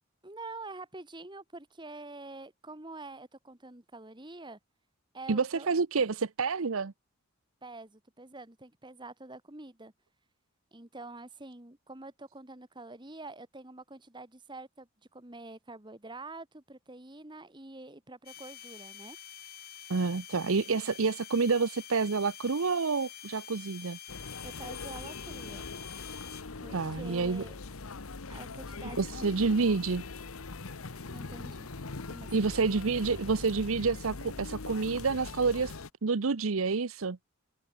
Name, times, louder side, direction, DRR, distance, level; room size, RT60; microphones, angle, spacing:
voice 1, 0.2-4.6 5.1-5.7 7.6-9.9 10.7-19.2 24.4-25.7 26.6-27.6 28.3-29.3 31.1-31.7 32.1-32.3, right 2 dB, 20° right, 1.8 m, -46 dB
voice 2, 5.3-6.9 19.9-24.0 26.7-27.4 29.0-30.0 32.3-35.8 36.0-37.2, right 4 dB, 80° right, 0.8 m, -28 dB
sound 1, 18.3-26.4, left 10 dB, 45° left, 2.7 m, -47 dB
sound 2, 24.1-35.9, left 3 dB, 90° left, 1.2 m, -42 dB
head